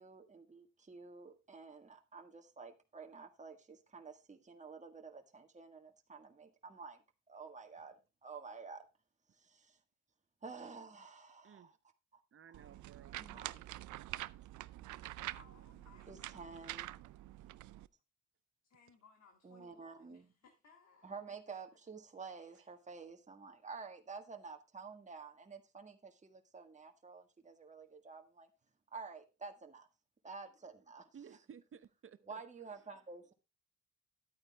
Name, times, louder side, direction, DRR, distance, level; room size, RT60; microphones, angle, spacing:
voice 1, 0.0-7.0 7.3-8.9 9.4-9.8 10.4-11.7 12.1-12.2 12.5-12.6 13.2-13.6 16.1-16.9 19.4-20.3 21.0-28.5 28.9-29.9 30.2-31.1 32.3-33.3, right 4 dB, 25° right, 1.7 m, -50 dB
voice 2, 12.3-13.3 31.1-32.4, right 7 dB, 45° right, 1.0 m, -56 dB
sound 1, 12.5-17.9, right 16 dB, 75° right, 0.5 m, -46 dB
voice 3, 15.0-16.5 18.6-21.2 22.4-22.7, left 5 dB, 60° left, 2.5 m, -65 dB
11.5 x 8.9 x 3.5 m
cardioid pair, 90°, 30 cm